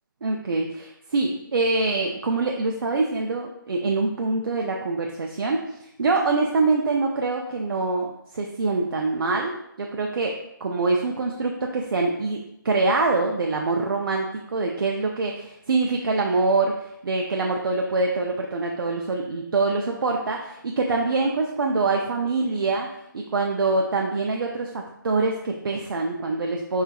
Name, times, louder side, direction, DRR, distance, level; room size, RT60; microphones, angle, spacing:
voice 1, 0.2-5.6 6.0-10.3 10.6-12.4 12.6-22.9 23.1-26.8, right 3 dB, 90° right, 1 dB, 0.4 m, -24 dB
4.2 x 2.4 x 2.3 m, 0.81 s
hypercardioid pair, 175°, 11 cm